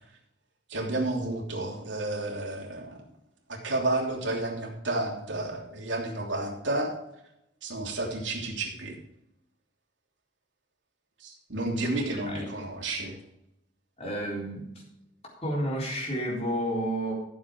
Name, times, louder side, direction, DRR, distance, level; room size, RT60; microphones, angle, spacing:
voice 1, 0.7-3.0 3.5-6.9 7.6-9.0 11.2-13.2, right 2 dB, 75° right, 0 dB, 3.0 m, -31 dB
voice 2, 14.0-14.7 15.4-17.1, equal, 35° left, -2 dB, 4.0 m, -30 dB
13.5 x 7.3 x 4.8 m, 0.85 s
head